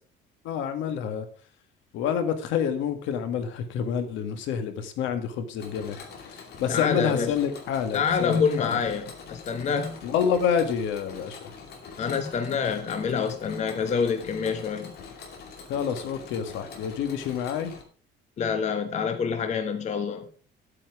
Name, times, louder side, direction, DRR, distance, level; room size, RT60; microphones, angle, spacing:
voice 1, 0.4-1.3 1.9-6.1 6.6-8.8 10.0-11.4 15.7-17.7, left 7 dB, 75° left, 8 dB, 1.8 m, -28 dB
Mechanisms, 5.6-17.8, left 5 dB, 55° left, 2.6 m, -44 dB
voice 2, 6.7-7.3 7.9-10.0 12.0-14.9 18.4-20.3, left 6 dB, 35° left, 7 dB, 1.1 m, -27 dB
10.5 x 8.7 x 4.8 m, 0.43 s
cardioid pair, 155°, 20 cm